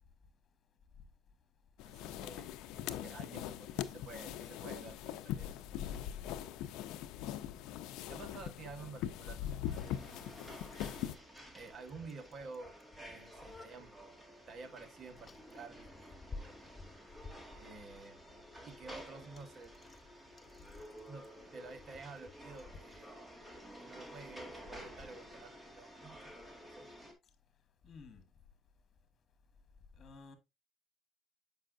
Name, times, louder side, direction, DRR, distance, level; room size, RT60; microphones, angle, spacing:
sound 1, 1.8-11.2, left 11 dB, 85° left, 0.5 m, -41 dB
voice 1, 1.8-5.6 8.1-10.3 11.5-12.7 13.0-13.9 14.5-16.6 17.5-18.2 18.6-19.7 21.1-23.2 23.8-26.3 26.6-26.9, right 4 dB, 50° right, 1.3 m, -51 dB
sound 2, 9.6-27.1, equal, 10° right, 1.8 m, -53 dB
Bicycle, 10.4-23.1, left 3 dB, 30° left, 0.6 m, -57 dB
voice 2, 27.8-28.3 29.9-30.4, left 4 dB, 45° left, 1.4 m, -53 dB
7.5 x 5.4 x 2.6 m
cardioid pair, 100°, 0 cm